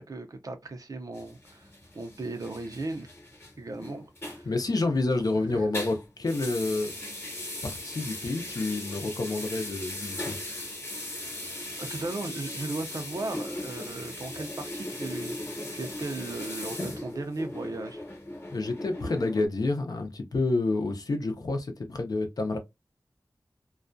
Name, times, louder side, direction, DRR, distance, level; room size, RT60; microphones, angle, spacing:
voice 1, 0.0-1.7 1.9-3.1 3.6-4.5 5.5-5.7 11.8-15.4 15.7-18.0, right 2 dB, 60° right, 0.5 m, -36 dB
sound 1, 1.1-5.3 5.6-19.5, left 1 dB, 35° left, 1.0 m, -38 dB
voice 2, 4.4-6.9 7.6-10.4 18.5-22.6, left 2 dB, 65° left, 0.6 m, -29 dB
2.3 x 2.2 x 2.5 m
wide cardioid pair, 85°, 7 cm